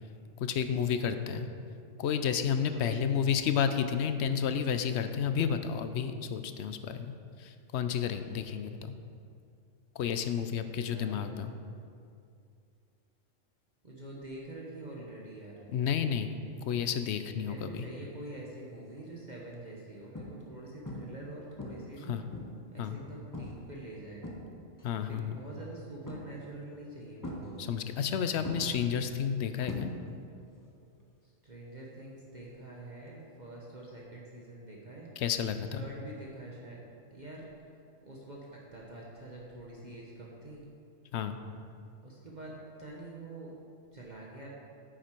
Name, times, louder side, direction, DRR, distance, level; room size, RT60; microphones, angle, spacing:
voice 1, 0.4-1.5 2.0-8.9 10.0-11.5 15.7-16.3 16.6-17.9 22.1-22.2 22.8-23.0 24.8-25.4 27.6-29.9 35.2-35.8 41.1-41.4, left 7 dB, 65° left, 9 dB, 0.8 m, -31 dB
voice 2, 2.7-3.1 10.8-11.3 13.8-15.5 17.4-22.2 22.7-24.3 25.0-27.7 31.2-35.1 35.7-36.8 37.1-37.5 38.0-40.6 42.0-42.5 42.8-43.5 43.9-44.5, right 2 dB, 35° right, -4 dB, 1.2 m, -46 dB
sound 1, 18.5-18.8 19.4-19.6 20.1-20.6 20.9-21.3 21.6-22.7 23.3-23.7 24.0-24.9 26.1-26.6 27.2-28.1 28.4-30.3 30.6-31.0 33.1-33.2, left 1 dB, 20° left, 0.8 m, -42 dB
9.5 x 7.5 x 4.5 m, 2.4 s
omnidirectional pair, 1.3 m